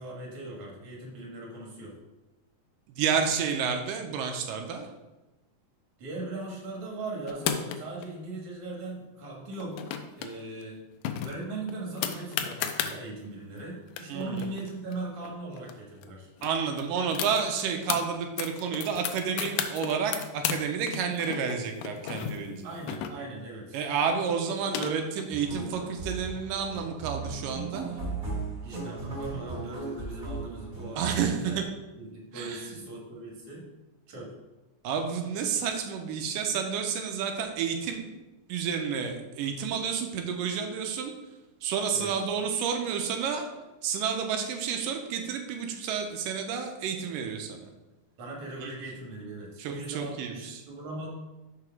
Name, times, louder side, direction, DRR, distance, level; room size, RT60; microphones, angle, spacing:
voice 1, 0.0-2.0 6.0-10.8 11.2-16.3 22.6-23.8 24.5-24.6 28.6-31.6 32.0-33.7 34.1-34.3 41.9-42.1 48.2-51.1, right 2 dB, 50° right, -2 dB, 2.4 m, -39 dB
voice 2, 2.9-4.9 14.1-14.5 16.4-22.7 23.7-28.0 31.0-31.7 32.3-32.7 34.8-38.0 38.5-41.1 41.6-43.5 43.8-47.6 48.6-48.7 49.6-50.6, right 6 dB, 80° right, 4 dB, 2.4 m, -30 dB
sound 1, 7.3-8.1 9.5-10.3 10.6-10.7 11.1-13.0 13.6-13.7 13.9-15.7 16.0-16.1 16.4-18.0 18.4-20.6 20.9-23.5 24.3-25.3, left 9 dB, 85° left, 2.3 m, -33 dB
sound 2, 25.3-31.6, right 4 dB, 25° right, 2.5 m, -37 dB
5.9 x 4.9 x 5.9 m, 1.1 s
omnidirectional pair, 3.8 m